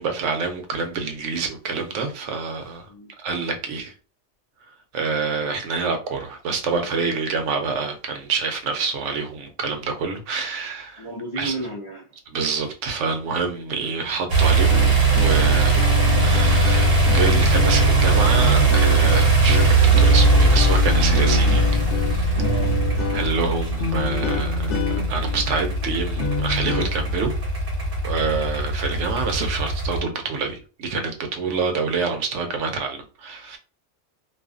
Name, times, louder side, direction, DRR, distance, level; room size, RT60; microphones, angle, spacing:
voice 1, 0.0-2.9 3.2-3.9 4.9-11.1 11.4-11.5 12.3-15.9 16.2-21.8 22.1-22.3 23.1-24.8 25.1-27.3 28.0-33.6, right 4 dB, 80° right, 0.9 m, -27 dB
voice 2, 11.0-12.1 22.4-22.8, right 1 dB, 45° left, 0.4 m, -33 dB
sound 1, 14.3-30.0, right 3 dB, 60° right, 0.9 m, -19 dB
sound 2, 14.6-26.9, left 5 dB, 75° left, 0.9 m, -28 dB
2.4 x 2.4 x 2.4 m
omnidirectional pair, 1.2 m